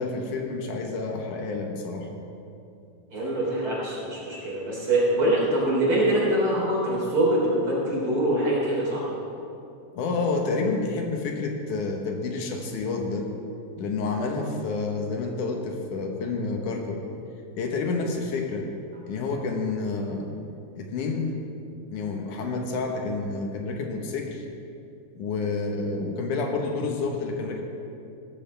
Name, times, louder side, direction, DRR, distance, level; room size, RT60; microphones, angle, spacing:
voice 1, 0.0-2.1 9.9-13.3 13.8-17.0 17.6-18.7 19.1-20.4 20.8-21.4 21.9-24.4 25.2-27.6, left 3 dB, 80° left, 2 dB, 2.7 m, -29 dB
voice 2, 3.1-9.1, right 1 dB, 40° right, -5 dB, 4.3 m, -24 dB
16.5 x 14.0 x 3.4 m, 2.6 s
omnidirectional pair, 3.6 m